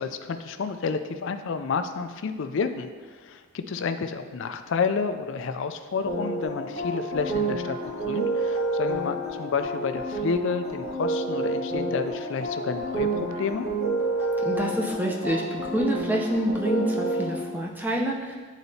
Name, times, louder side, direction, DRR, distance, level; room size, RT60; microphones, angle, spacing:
voice 1, 0.0-2.9 3.2-7.8 8.1-13.7, left 5 dB, 60° left, 9 dB, 0.4 m, -30 dB
sound 1, 6.1-17.4, right 2 dB, 75° right, 1.8 m, -29 dB
voice 2, 14.4-18.3, right 1 dB, 10° right, -1 dB, 0.6 m, -27 dB
9.5 x 4.0 x 2.7 m, 1.4 s
head